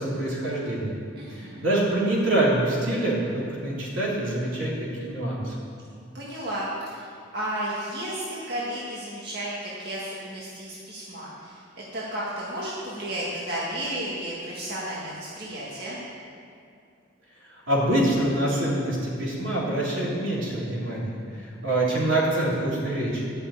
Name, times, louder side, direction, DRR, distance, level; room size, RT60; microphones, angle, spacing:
voice 1, 0.0-1.0 1.3-4.7 5.0-5.5 17.7-21.2 21.6-23.3, right 1 dB, 80° right, -5 dB, 3.2 m, -25 dB
voice 2, 1.2-1.7 6.1-16.0, right 1 dB, 55° right, -7 dB, 1.7 m, -33 dB
11.0 x 6.7 x 8.4 m, 2.4 s
head